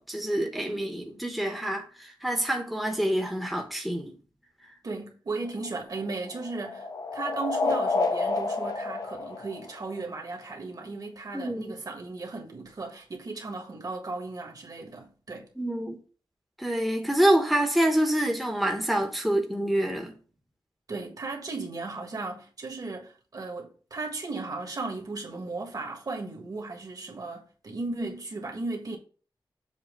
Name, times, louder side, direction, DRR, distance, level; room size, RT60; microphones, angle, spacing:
voice 1, 0.0-4.1 11.3-11.7 15.6-16.0 16.6-20.1, right 1 dB, ahead, 0.9 m, -26 dB
voice 2, 4.8-15.5 20.9-29.0, right 3 dB, 45° right, 1.6 m, -36 dB
sound 1, 5.5-10.2, left 3 dB, 45° left, 0.5 m, -30 dB
7.4 x 2.8 x 5.2 m
wide cardioid pair, 140°, 9 cm